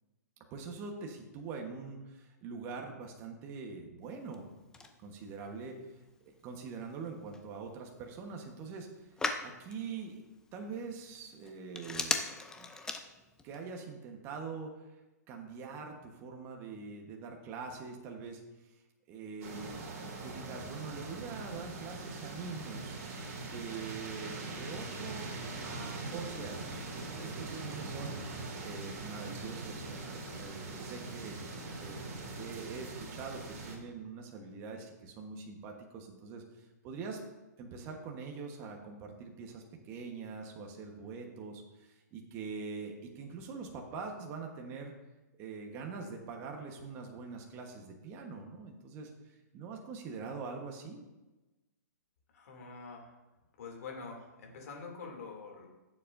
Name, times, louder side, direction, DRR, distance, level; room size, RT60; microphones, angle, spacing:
voice 1, 0.5-4.5 5.0-9.1 9.4-10.2 10.5-12.2 12.6-12.7 13.4-14.7 15.3-18.8 19.1-19.8 20.2-23.0 23.4-25.3 25.6-26.8 27.2-31.4 31.8-37.2 37.6-44.9 45.4-51.0, right 5 dB, 25° right, 2 dB, 1.2 m, -44 dB
Telephone, 4.0-13.6, left 3 dB, 5° left, 0.5 m, -42 dB
sound 1, 19.4-33.8, right 3 dB, 55° right, 2.6 m, -42 dB
voice 2, 52.3-53.2 53.6-55.7, left 4 dB, 60° left, 1 dB, 2.7 m, -46 dB
15.5 x 7.2 x 2.6 m, 1.1 s
hypercardioid pair, 150°, 9 cm